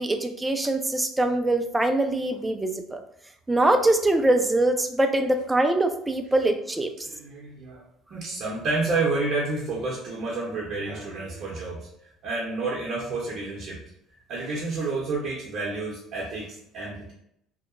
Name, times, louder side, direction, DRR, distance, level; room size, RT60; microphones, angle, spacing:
voice 1, 0.0-3.0 3.5-6.9, right 2 dB, 15° right, 7 dB, 0.4 m, -23 dB
voice 2, 7.1-7.8 8.1-11.9 12.2-13.8 14.3-17.1, right 3 dB, 60° right, -4 dB, 0.7 m, -29 dB
2.8 x 2.1 x 2.5 m, 0.73 s
hypercardioid pair, 65°, 0 cm